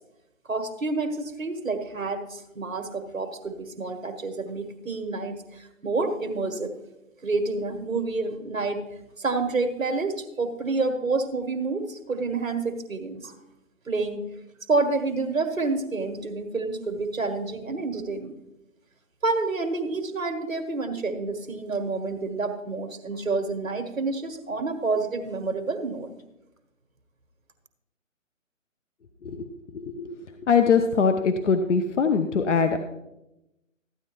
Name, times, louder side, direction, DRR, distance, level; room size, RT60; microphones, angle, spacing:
voice 1, 0.5-6.7 7.2-8.9 9.2-13.3 13.9-14.3 14.7-18.3 19.2-26.1, right 3 dB, 85° right, 6 dB, 1.4 m, -28 dB
voice 2, 29.2-30.1 30.5-32.8, left 5 dB, 65° left, 7 dB, 0.8 m, -22 dB
14.0 x 9.6 x 3.0 m, 0.92 s
figure-of-eight pair, 140°, 39 cm